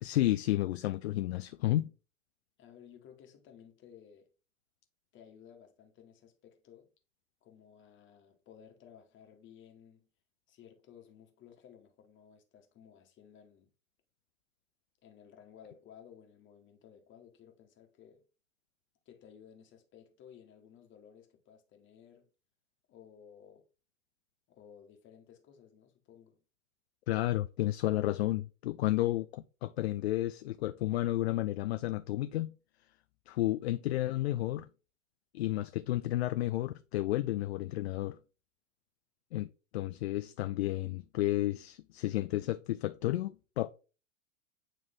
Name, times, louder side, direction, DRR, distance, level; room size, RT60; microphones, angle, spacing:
voice 1, 0.0-1.9 27.1-32.5 33.3-34.7 35.3-38.2 39.3-43.7, left 15 dB, 55° left, 0.4 m, -32 dB
voice 2, 2.6-4.3 5.1-6.9 7.4-10.1 10.5-13.7 15.0-18.2 19.0-22.3 22.9-23.6 24.5-26.4, left 8 dB, 30° left, 1.4 m, -57 dB
9.0 x 3.1 x 3.7 m
figure-of-eight pair, 100°, 39 cm